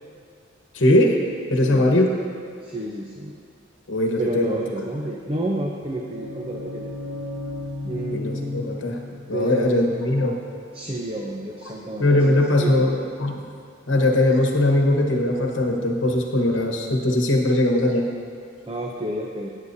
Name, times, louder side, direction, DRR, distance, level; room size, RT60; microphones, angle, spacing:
voice 1, 0.7-1.2 1.5-2.1 3.9-4.6 8.1-9.0 9.3-10.4 12.0-13.5 13.9-18.1, left 1 dB, 70° left, 1 dB, 1.2 m, -20 dB
voice 2, 2.6-3.4 4.2-6.9 7.8-8.2 9.3-10.0 10.7-12.9 18.7-19.5, right 1 dB, 25° right, -1 dB, 0.7 m, -30 dB
sound 1, 5.7-11.4, left 2 dB, 60° right, 1.0 m, -35 dB
16.5 x 8.1 x 2.7 m, 2.4 s
head